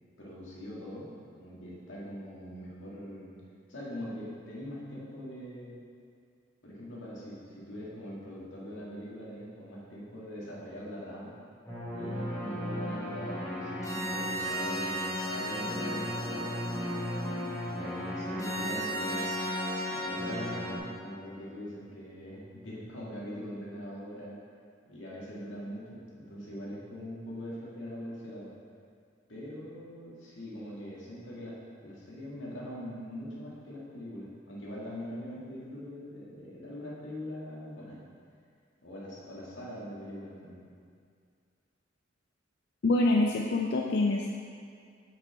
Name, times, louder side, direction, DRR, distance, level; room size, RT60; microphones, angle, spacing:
voice 1, 0.2-3.4 3.7-5.8 6.6-11.3 11.9-16.8 17.7-19.2 19.8-24.4 24.9-28.5 29.3-31.6 31.8-38.0 38.8-40.7, equal, 90° left, -6 dB, 1.9 m, -42 dB
sound 1, 11.7-20.8, equal, 15° left, 1.2 m, -34 dB
voice 2, 42.8-44.3, left 2 dB, 60° left, 0 dB, 0.4 m, -25 dB
6.0 x 5.7 x 4.9 m, 2.3 s
head